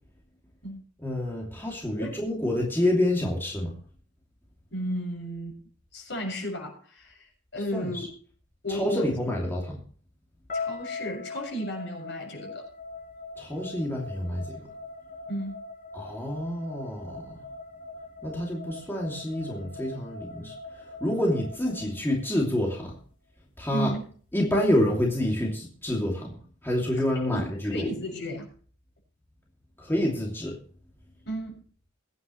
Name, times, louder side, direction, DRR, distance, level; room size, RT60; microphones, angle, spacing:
voice 1, 1.0-3.7 7.7-8.1 8.7-9.8 13.4-14.6 15.9-17.3 18.2-20.5 21.0-23.0 23.6-23.9 24.3-26.3 26.6-27.9 29.8-30.6, left 1 dB, 10° left, -2 dB, 2.7 m, -28 dB
voice 2, 4.7-5.6 5.9-8.1 8.6-9.1 10.5-12.7 15.3-15.5 23.7-24.0 27.2-28.5 31.2-31.5, equal, 65° left, 1 dB, 6.9 m, -34 dB
sound 1, 10.5-22.6, left 3 dB, 45° left, 5.1 m, -41 dB
22.0 x 9.6 x 3.2 m, 0.44 s
head